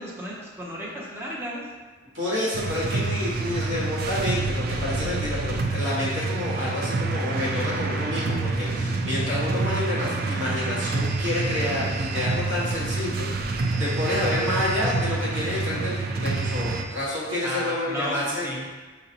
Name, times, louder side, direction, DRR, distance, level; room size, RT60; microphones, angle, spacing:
voice 1, 0.0-1.7 17.4-18.6, equal, 15° right, -5 dB, 0.7 m, -33 dB
voice 2, 2.1-18.5, left 1 dB, 80° right, -8 dB, 1.4 m, -29 dB
sound 1, 2.5-16.8, right 3 dB, 55° right, 0.3 m, -27 dB
5.1 x 2.7 x 2.8 m, 1.3 s
head